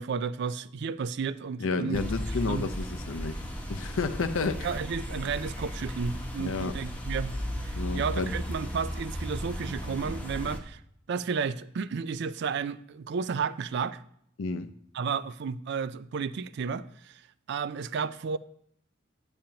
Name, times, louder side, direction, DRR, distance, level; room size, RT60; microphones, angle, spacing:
voice 1, 0.0-2.0 2.4-2.7 4.6-7.3 7.6-10.8 11.1-14.0 14.9-17.2 17.5-18.4, right 5 dB, 60° right, 0.3 m, -32 dB
voice 2, 1.6-4.7 6.4-6.7 7.7-8.3 14.4-14.7, left 4 dB, 85° left, 0.6 m, -31 dB
sound 1, 1.9-10.6, equal, 10° left, 0.9 m, -35 dB
10.0 x 8.8 x 2.8 m
head